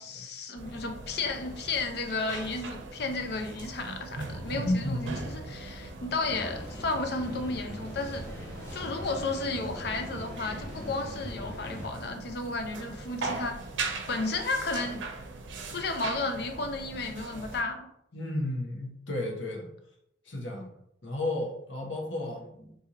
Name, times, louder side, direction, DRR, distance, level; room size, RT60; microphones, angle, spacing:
voice 1, 0.0-8.2 8.7-15.0 15.7-17.9, left 3 dB, 60° left, 6 dB, 0.5 m, -33 dB
sound 1, 0.6-17.6, right 3 dB, 85° right, 0.6 m, -40 dB
voice 2, 4.6-5.0 18.1-19.7 20.2-20.7 21.0-22.8, left 1 dB, 80° left, 0 dB, 0.9 m, -32 dB
sound 2, 6.2-11.9, left 1 dB, 15° left, 1.1 m, -41 dB
2.8 x 2.6 x 3.7 m, 0.75 s
head